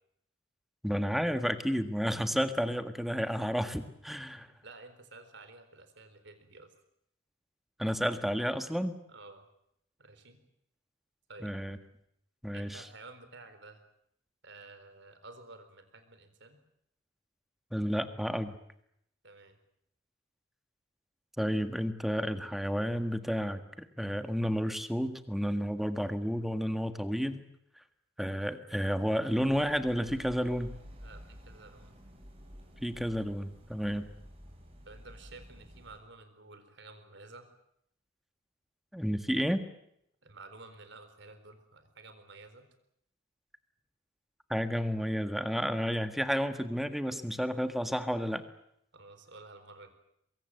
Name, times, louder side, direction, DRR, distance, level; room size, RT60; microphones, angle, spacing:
voice 1, 0.8-4.5 7.8-9.0 11.4-11.8 12.4-12.8 17.7-18.5 21.4-27.4 28.2-30.8 32.8-34.1 38.9-39.7 44.5-48.4, equal, ahead, 9 dB, 1.6 m, -31 dB
voice 2, 4.5-6.7 9.1-9.5 10.0-10.4 11.3-11.5 12.5-13.8 14.4-16.6 19.2-19.6 31.0-32.0 34.9-37.5 40.2-42.7 48.9-49.9, right 3 dB, 60° right, 9 dB, 4.2 m, -52 dB
sound 1, 29.3-36.0, equal, 30° right, 5.3 m, -51 dB
24.0 x 23.0 x 7.8 m, 0.75 s
head